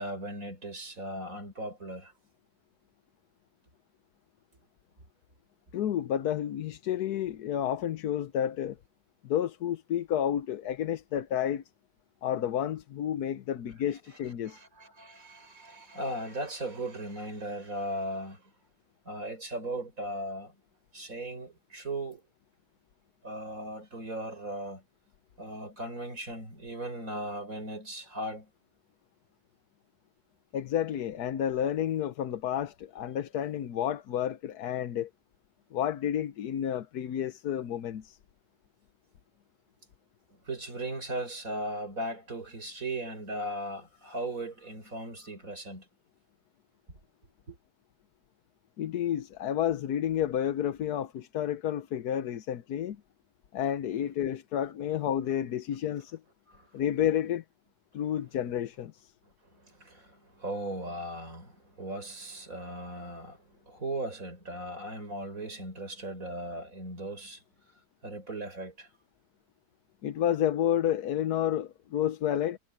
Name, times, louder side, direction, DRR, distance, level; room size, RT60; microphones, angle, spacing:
voice 1, 0.0-2.1 14.4-18.4 19.1-20.5 20.9-22.2 23.2-24.8 25.4-28.5 40.5-45.9 47.5-47.6 56.5-56.8 59.5-67.4 68.0-68.9, right 1 dB, 60° right, 6.0 m, -37 dB
voice 2, 5.7-8.8 9.2-11.6 12.2-14.6 30.5-35.1 35.7-38.2 48.8-53.0 53.5-56.2 56.7-57.4 57.9-59.1 70.0-72.6, left 10 dB, 85° left, 1.4 m, -30 dB
omnidirectional pair, 1.6 m